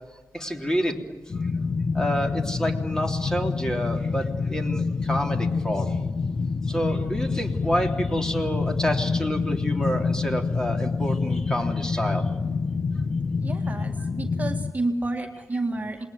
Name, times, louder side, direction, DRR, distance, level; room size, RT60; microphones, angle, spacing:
voice 1, 0.3-1.0 1.9-6.0 6.7-12.3, equal, 10° left, 3 dB, 3.4 m, -28 dB
sound 1, 1.3-14.7, left 4 dB, 50° left, 1.1 m, -27 dB
voice 2, 13.4-16.1, right 2 dB, 25° right, 2 dB, 2.0 m, -30 dB
28.0 x 21.0 x 9.5 m, 1.3 s
wide cardioid pair, 100°, 6 cm